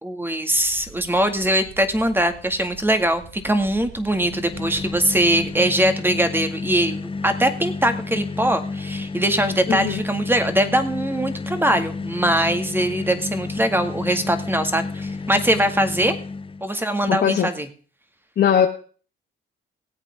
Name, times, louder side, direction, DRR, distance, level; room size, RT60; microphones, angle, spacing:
voice 1, 0.0-16.1 16.6-17.7, right 1 dB, 10° right, 8 dB, 2.1 m, -22 dB
sound 1, 0.5-5.5, right 5 dB, 75° right, 4.5 m, -45 dB
sound 2, 4.1-16.7, left 4 dB, 25° left, 0.8 m, -31 dB
voice 2, 9.7-10.0 17.1-17.5 18.4-18.7, left 9 dB, 55° left, 4 dB, 1.2 m, -19 dB
18.5 x 8.3 x 3.6 m, 0.40 s
cardioid pair, 90°, 20 cm